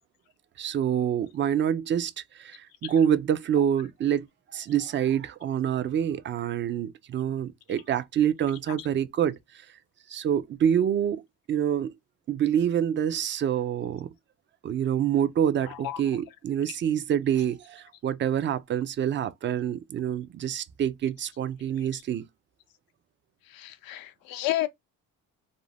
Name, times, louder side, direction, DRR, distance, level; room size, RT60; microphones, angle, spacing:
voice 1, 0.6-4.3 4.5-9.6 10.1-11.2 11.5-11.9 12.3-14.1 14.6-22.2, right 9 dB, 35° right, 0.4 m, -26 dB
voice 2, 23.5-24.7, left 15 dB, 75° left, 0.5 m, -31 dB
2.5 x 2.0 x 3.2 m
cardioid pair, 95°, 36 cm